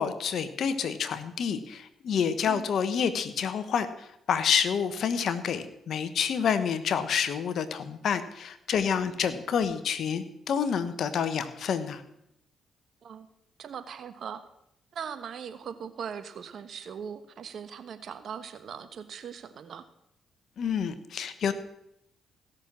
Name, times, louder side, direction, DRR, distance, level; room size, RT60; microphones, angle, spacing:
voice 1, 0.0-12.0 20.6-21.5, left 7 dB, 65° left, 12 dB, 1.2 m, -28 dB
voice 2, 13.6-14.4 14.9-19.8, right 7 dB, 65° right, 11 dB, 1.2 m, -40 dB
16.0 x 6.5 x 7.4 m, 0.81 s
supercardioid pair, 55°, 0 cm